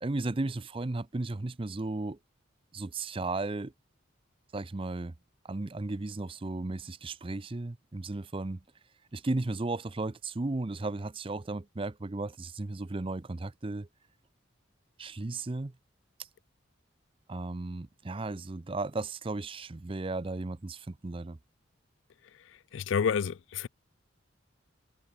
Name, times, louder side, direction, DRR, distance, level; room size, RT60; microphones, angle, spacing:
voice 1, 0.0-2.2 2.7-3.7 4.5-5.1 5.4-8.6 9.1-13.9 15.0-15.7 17.3-21.4, right 2 dB, 25° right, 0.6 m, -35 dB
voice 2, 22.7-23.7, left 7 dB, 70° left, 0.4 m, -29 dB
head